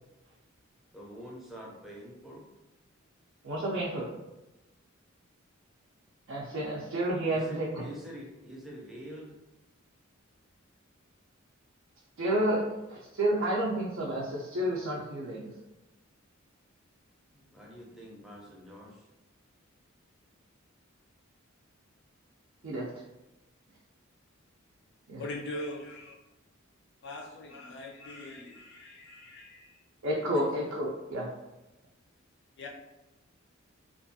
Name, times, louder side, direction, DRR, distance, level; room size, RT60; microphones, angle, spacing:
voice 1, 0.9-2.4 7.3-9.3 17.3-19.0, equal, ahead, -4 dB, 0.5 m, -46 dB
voice 2, 3.4-4.1 6.3-7.8 12.2-15.5 22.6-22.9 25.1-25.2 30.0-31.3, right 1 dB, 65° right, -4 dB, 0.4 m, -30 dB
voice 3, 25.2-26.1 27.0-29.8 32.6-32.7, left 1 dB, 60° left, -1 dB, 0.5 m, -41 dB
2.5 x 2.2 x 2.6 m, 1.0 s
head